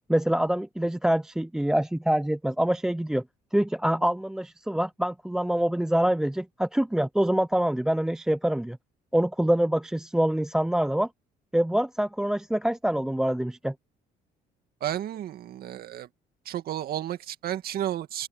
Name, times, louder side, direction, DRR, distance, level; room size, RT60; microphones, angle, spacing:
voice 1, 0.1-3.2 3.5-8.8 9.1-11.1 11.5-13.7, right 1 dB, 5° right, 0.3 m, -25 dB
voice 2, 14.8-16.1 16.5-18.3, right 11 dB, 65° right, 2.0 m, -32 dB
open air
cardioid pair, 110°, 17 cm